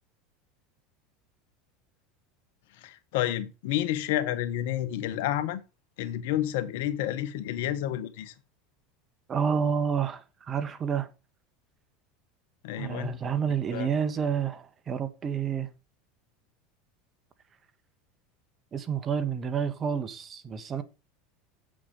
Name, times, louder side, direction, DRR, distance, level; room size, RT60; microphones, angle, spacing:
voice 1, 2.8-5.6 6.0-8.3 12.6-13.2 13.7-13.9, left 12 dB, 70° left, 1.1 m, -30 dB
voice 2, 9.3-11.1 12.8-15.7 18.7-20.8, right 7 dB, 35° right, 1.7 m, -29 dB
8.4 x 7.7 x 5.5 m
hypercardioid pair, 85°, 0 cm